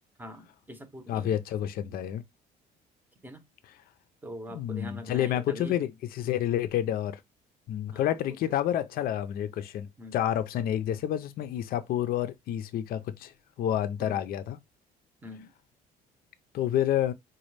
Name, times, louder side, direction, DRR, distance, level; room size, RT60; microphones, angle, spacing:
voice 1, 0.2-1.4 3.2-3.4 4.2-5.8 7.9-8.1 10.0-10.2 14.0-14.2 15.2-15.5, equal, 10° right, 0.7 m, -43 dB
voice 2, 1.1-2.2 4.5-7.2 7.7-13.3 13.6-14.6 16.5-17.1, left 11 dB, 60° left, 0.5 m, -29 dB
4.1 x 2.2 x 3.1 m
cardioid pair, 110°, 17 cm